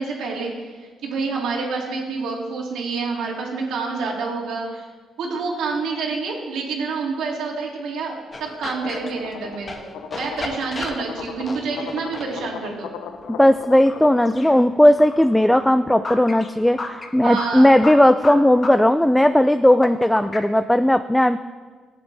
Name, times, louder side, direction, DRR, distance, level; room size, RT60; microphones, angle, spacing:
voice 1, 0.0-4.9 5.2-12.9 17.2-17.8, right 4 dB, 80° right, -1 dB, 2.2 m, -28 dB
sound 1, 8.3-20.5, left 2 dB, 30° left, 1.2 m, -35 dB
sound 2, 8.8-14.3, left 7 dB, 90° left, 0.6 m, -37 dB
voice 2, 13.3-21.4, left 1 dB, 5° left, 10 dB, 0.3 m, -16 dB
15.5 x 8.0 x 3.3 m, 1.5 s
cardioid pair, 90°, 0 cm